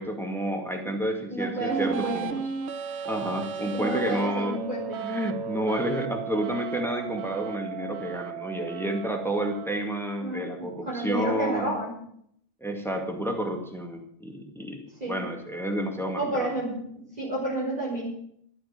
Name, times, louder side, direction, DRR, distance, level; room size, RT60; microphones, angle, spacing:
voice 1, 0.0-2.3 3.1-4.6 5.0-11.8 12.6-16.5, equal, ahead, 3 dB, 2.1 m, -30 dB
voice 2, 1.3-2.3 3.6-5.0 10.2-11.9 15.0-15.2 16.1-18.0, right 1 dB, 35° right, -6 dB, 4.9 m, -30 dB
sound 1, 1.7-9.7, right 7 dB, 65° right, 1.0 m, -35 dB
13.0 x 8.6 x 8.4 m, 0.67 s
omnidirectional pair, 1.2 m